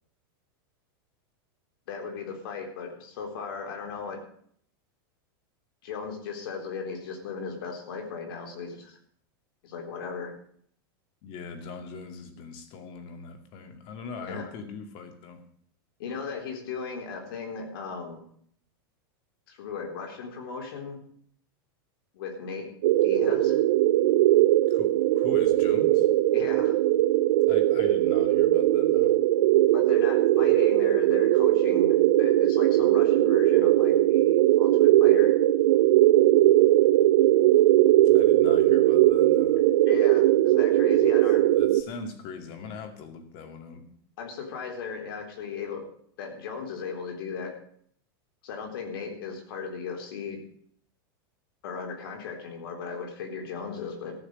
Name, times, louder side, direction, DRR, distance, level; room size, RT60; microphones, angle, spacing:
voice 1, 1.9-4.2 5.8-9.0 9.6-10.3 14.2-14.5 16.0-18.2 19.5-21.0 22.1-22.7 23.0-23.6 26.3-26.8 29.7-35.3 39.9-41.4 44.2-45.8 46.2-47.5 48.4-50.4 51.6-54.1, left 5 dB, 75° left, 4 dB, 3.8 m, -36 dB
voice 2, 11.2-15.4 24.7-26.1 27.5-29.2 38.0-39.6 41.6-43.9, left 4 dB, 45° left, 7 dB, 2.3 m, -41 dB
sound 1, 22.8-41.8, right 14 dB, 70° right, 0.7 m, -20 dB
14.5 x 6.5 x 8.0 m, 0.62 s
supercardioid pair, 145°, 12 cm